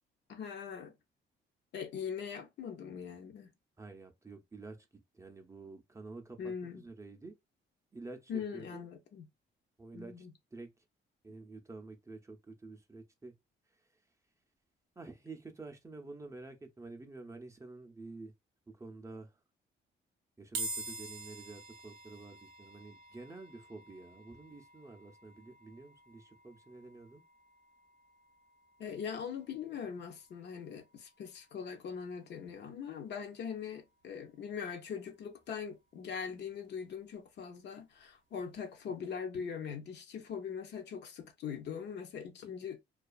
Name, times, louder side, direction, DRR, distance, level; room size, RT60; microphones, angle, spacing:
voice 1, 0.3-0.9 1.7-3.5 6.4-6.8 8.3-9.2 9.9-10.3 28.8-42.8, left 7 dB, 60° left, 0.5 m, -41 dB
voice 2, 3.8-4.9 5.1-7.3 7.9-8.8 9.8-10.7 11.2-13.3 13.7-14.0 15.0-18.3 18.7-19.4 20.4-27.2, right 3 dB, 15° right, 0.5 m, -49 dB
sound 1, 20.5-33.9, right 2 dB, 75° right, 0.5 m, -49 dB
2.3 x 2.3 x 2.3 m
cardioid pair, 90°, 20 cm